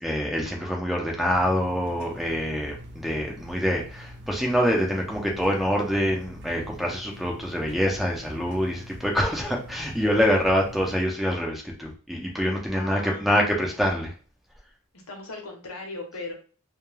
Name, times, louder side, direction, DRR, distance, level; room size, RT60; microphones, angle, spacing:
voice 1, 0.0-14.1, equal, ahead, -1 dB, 0.5 m, -25 dB
sound 1, 1.3-11.0, equal, 55° right, 0.5 m, -44 dB
voice 2, 12.7-13.3 14.9-16.3, left 2 dB, 90° left, 2 dB, 0.8 m, -37 dB
2.2 x 2.2 x 3.1 m, 0.40 s
head